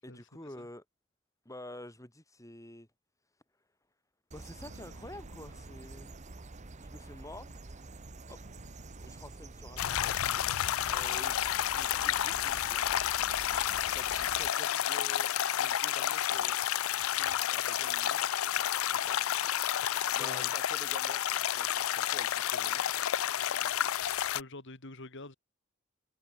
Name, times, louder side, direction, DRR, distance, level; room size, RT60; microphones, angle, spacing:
voice 1, 0.0-0.8 1.4-2.9 4.3-6.1 6.8-7.6 8.3-8.4 9.0-10.1 10.9-12.9 13.9-15.3 15.5-16.6 17.0-18.2 18.9-19.3 20.1-21.2 21.6-22.8, left 1 dB, 15° left, 7.5 m, -49 dB
sound 1, 4.3-14.5, right 2 dB, 35° right, 1.0 m, -48 dB
sound 2, 4.6-11.7, right 1 dB, 85° right, 5.2 m, -60 dB
sound 3, 9.8-24.4, left 11 dB, 90° left, 0.5 m, -30 dB
voice 2, 20.2-20.6 23.6-23.8 24.1-25.3, left 2 dB, 60° left, 3.6 m, -47 dB
head